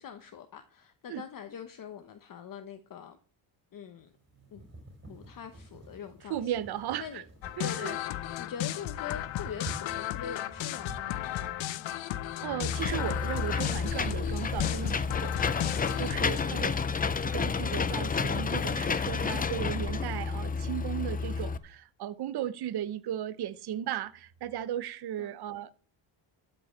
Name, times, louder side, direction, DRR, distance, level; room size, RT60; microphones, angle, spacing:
voice 1, 0.0-3.2 3.7-4.1 4.5-4.6 5.1-6.5 7.0-7.2 7.6-11.8 16.4-16.8 25.2-25.4, left 8 dB, 45° left, 1.0 m, -43 dB
sound 1, 4.0-17.2, right 1 dB, 25° right, 4.2 m, -51 dB
voice 2, 6.3-7.1 7.6-7.9 12.4-15.4 16.0-16.7 17.1-25.7, right 11 dB, 55° right, 0.8 m, -36 dB
sound 2, 7.4-16.4, left 13 dB, 70° left, 0.8 m, -35 dB
Engine / Mechanisms, 12.6-21.6, left 5 dB, 20° left, 0.4 m, -30 dB
12.5 x 5.4 x 7.3 m
cardioid pair, 155°, 47 cm